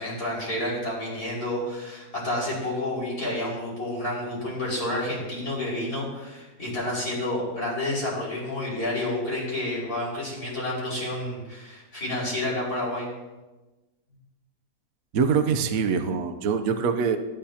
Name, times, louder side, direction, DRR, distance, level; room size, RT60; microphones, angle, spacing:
voice 1, 0.0-13.1, left 1 dB, 65° left, -5 dB, 5.9 m, -30 dB
voice 2, 15.1-17.2, right 6 dB, 60° right, 7 dB, 1.2 m, -24 dB
20.0 x 11.0 x 2.9 m, 1.2 s
omnidirectional pair, 1.7 m